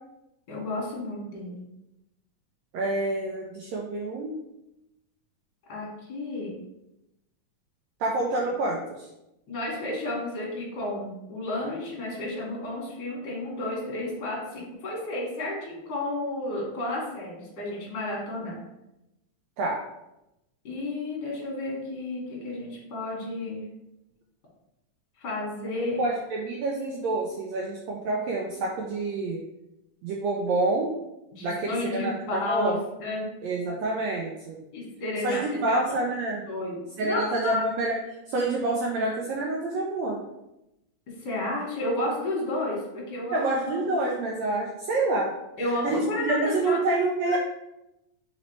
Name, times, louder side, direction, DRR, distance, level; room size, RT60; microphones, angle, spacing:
voice 1, 0.5-1.6 5.7-6.6 9.5-18.6 20.6-23.6 25.2-26.0 31.3-33.3 34.7-36.0 36.5-37.6 41.2-44.0 45.6-46.8 47.3-47.4, left 2 dB, 50° left, -4 dB, 1.4 m, -32 dB
voice 2, 2.7-4.4 8.0-9.1 19.6-19.8 25.7-29.4 30.0-30.9 31.4-32.8 33.4-34.6 35.2-36.4 37.0-40.2 43.3-45.3 45.7-47.4, right 2 dB, 80° right, -1 dB, 1.6 m, -27 dB
4.1 x 4.0 x 3.1 m, 0.90 s
omnidirectional pair, 3.5 m